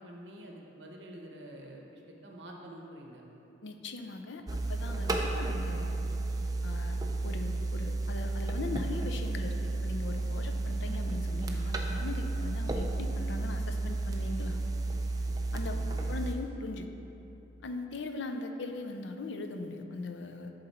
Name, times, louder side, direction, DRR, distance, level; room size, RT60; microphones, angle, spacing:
voice 1, 0.0-3.2 15.7-16.0, right 1 dB, 70° right, 0 dB, 0.9 m, -48 dB
voice 2, 3.6-4.4 4.7-6.0 6.6-14.6 15.5-15.8 16.1-16.9 17.6-20.5, left 3 dB, 70° left, 6 dB, 0.5 m, -39 dB
sound 1, 4.5-16.3, right 2 dB, 20° right, 0.4 m, -32 dB
10.5 x 4.0 x 4.2 m, 3.0 s
head